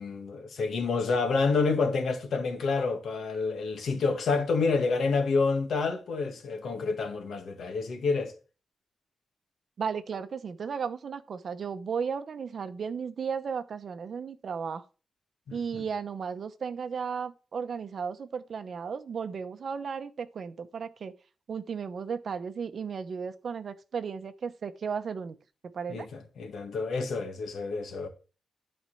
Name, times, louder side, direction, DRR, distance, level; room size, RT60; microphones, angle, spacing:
voice 1, 0.0-8.3 15.5-15.6 25.9-28.1, left 4 dB, 75° left, 2.0 m, -28 dB
voice 2, 9.8-14.8 15.5-21.1 21.5-25.4 25.7-26.1, right 6 dB, 55° right, 0.9 m, -35 dB
11.5 x 4.4 x 6.4 m
wide cardioid pair, 145°, 0 cm